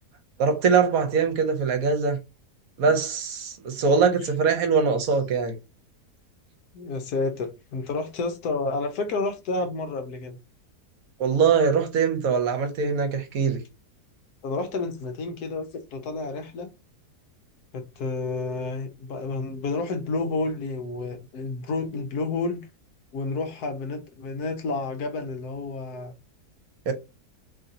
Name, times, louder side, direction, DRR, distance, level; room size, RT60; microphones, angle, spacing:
voice 1, 0.4-2.2 2.8-5.6 11.2-13.6 26.9-27.0, right 5 dB, 65° right, 1.1 m, -22 dB
voice 2, 6.7-10.4 14.4-16.7 17.7-22.7 23.1-26.1, left 3 dB, 75° left, 1.3 m, -30 dB
3.1 x 2.7 x 3.8 m
omnidirectional pair, 1.7 m